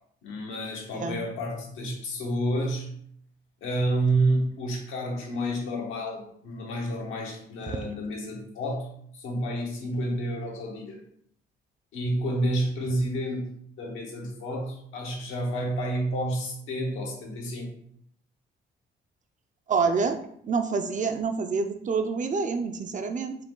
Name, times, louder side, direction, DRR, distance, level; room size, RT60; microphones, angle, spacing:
voice 1, 0.2-2.9 3.6-11.0 11.9-17.7, right 1 dB, 85° left, -1 dB, 1.3 m, -29 dB
voice 2, 19.7-20.2 20.4-23.4, right 5 dB, 40° right, 6 dB, 0.5 m, -27 dB
4.7 x 2.3 x 3.8 m, 0.66 s
cardioid pair, 90°, 20 cm